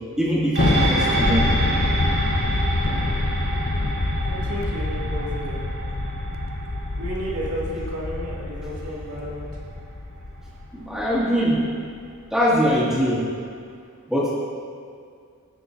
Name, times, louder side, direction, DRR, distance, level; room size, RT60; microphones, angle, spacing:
voice 1, 0.2-1.6 10.7-11.6 12.3-13.3 14.1-14.3, equal, 5° right, -8 dB, 2.0 m, -22 dB
Thunder, 0.6-11.2, left 2 dB, 45° left, 0.6 m, -26 dB
sound 1, 0.6-9.2 9.6-9.7, right 2 dB, 55° right, 2.2 m, -30 dB
voice 2, 4.2-5.6 7.0-9.5, equal, 80° right, -6 dB, 2.2 m, -32 dB
15.0 x 6.2 x 2.6 m, 2.2 s
head